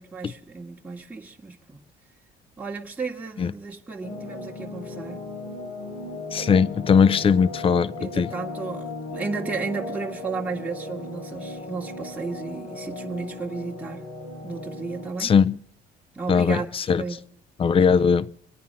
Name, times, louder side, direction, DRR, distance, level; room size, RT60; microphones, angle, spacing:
voice 1, 0.0-1.8 2.6-5.2 8.0-14.0 14.4-15.3 16.1-16.7 17.0-17.2 17.9-18.1, right 4 dB, 10° right, 1.6 m, -33 dB
sound 1, 4.0-15.1, left 2 dB, 85° left, 4.7 m, -36 dB
voice 2, 6.3-8.3 15.2-15.6 16.3-17.0 17.6-18.3, left 6 dB, 35° left, 0.5 m, -19 dB
24.5 x 9.4 x 5.5 m
cardioid pair, 110°, 17 cm